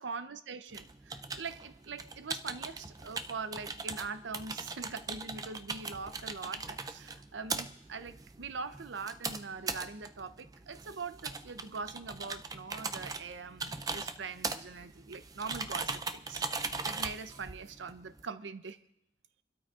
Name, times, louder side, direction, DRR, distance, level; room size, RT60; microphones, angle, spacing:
voice 1, 0.0-18.8, right 4 dB, 85° right, 11 dB, 0.6 m, -42 dB
sound 1, 0.7-18.2, right 4 dB, 20° right, 0.4 m, -40 dB
27.5 x 12.5 x 2.4 m, 0.80 s
head